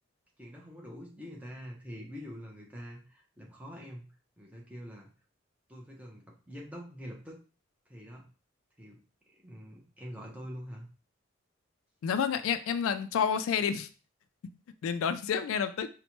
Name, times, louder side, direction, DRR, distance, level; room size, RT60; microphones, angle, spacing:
voice 1, 0.4-4.1 4.4-5.1 5.7-7.4 7.9-8.2 8.8-9.0 9.3-10.9, equal, 5° right, -2 dB, 0.6 m, -45 dB
voice 2, 12.0-13.9 14.8-15.9, left 7 dB, 90° left, 11 dB, 0.3 m, -29 dB
4.1 x 2.2 x 2.9 m, 0.36 s
head